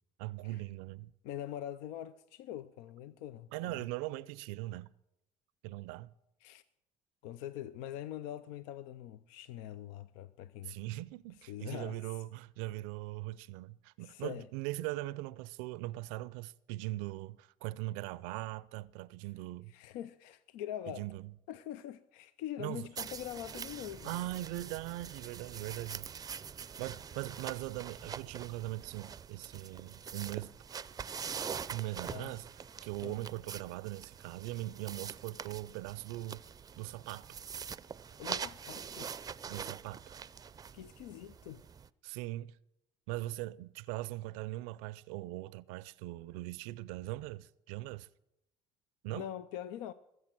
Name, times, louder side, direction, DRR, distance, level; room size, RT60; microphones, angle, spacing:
voice 1, 0.2-1.1 3.5-4.9 5.6-6.1 10.6-19.7 20.9-21.3 22.6-22.9 24.0-26.1 26.8-30.5 31.7-32.5 32.8-36.4 36.8-37.4 39.5-40.2 42.0-42.6 43.1-48.1 49.0-49.3, right 18 dB, 90° right, 0.5 m, -40 dB
voice 2, 1.2-3.8 6.4-6.6 7.2-10.8 11.5-12.0 14.0-14.5 19.7-21.1 21.5-24.2 32.1-32.3 33.0-33.2 38.2-39.1 40.7-41.6 49.1-49.9, left 11 dB, 85° left, 0.5 m, -43 dB
sound 1, 22.9-41.9, right 7 dB, 25° right, 0.5 m, -44 dB
22.5 x 7.9 x 6.0 m
supercardioid pair, 95°, 14 cm